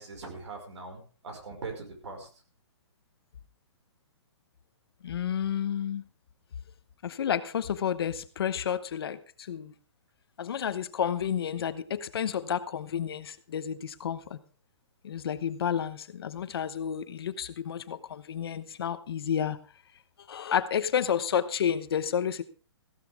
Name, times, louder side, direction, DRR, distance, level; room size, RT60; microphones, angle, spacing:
voice 1, 0.0-2.3, right 3 dB, 75° right, 4 dB, 5.3 m, -41 dB
voice 2, 5.0-6.0 7.0-9.7 10.4-14.4 15.0-19.6 20.3-22.4, left 8 dB, 55° left, 13 dB, 1.0 m, -30 dB
15.0 x 13.5 x 3.5 m, 0.37 s
hypercardioid pair, 170°, 15 cm